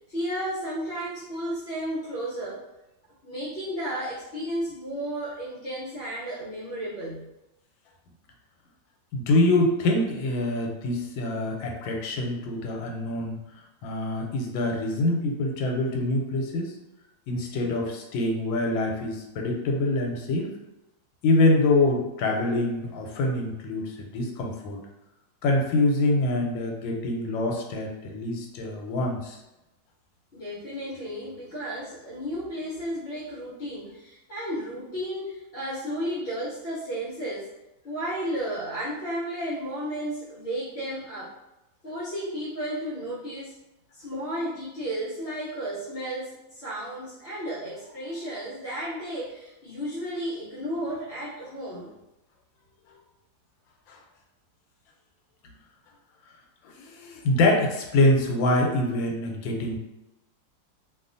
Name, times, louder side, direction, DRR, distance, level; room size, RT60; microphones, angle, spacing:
voice 1, 0.1-2.6 3.2-7.3 30.3-37.5 37.8-41.3 41.8-43.5 43.9-51.9, equal, 50° left, -10 dB, 0.7 m, -33 dB
voice 2, 9.1-13.4 13.8-16.7 17.3-20.5 21.2-24.8 25.4-29.4 53.9-54.0 56.8-59.8, left 2 dB, 90° left, 1 dB, 1.4 m, -25 dB
2.9 x 2.4 x 2.5 m, 0.96 s
omnidirectional pair, 2.0 m